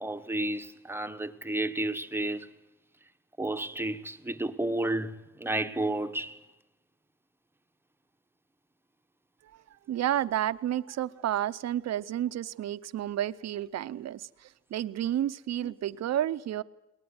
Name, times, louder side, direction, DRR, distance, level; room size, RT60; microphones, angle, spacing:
voice 1, 0.0-2.5 3.4-6.4, right 1 dB, 5° right, 1.1 m, -32 dB
voice 2, 9.9-16.6, right 11 dB, 55° right, 0.8 m, -31 dB
22.0 x 19.0 x 9.7 m
cardioid pair, 135°, 31 cm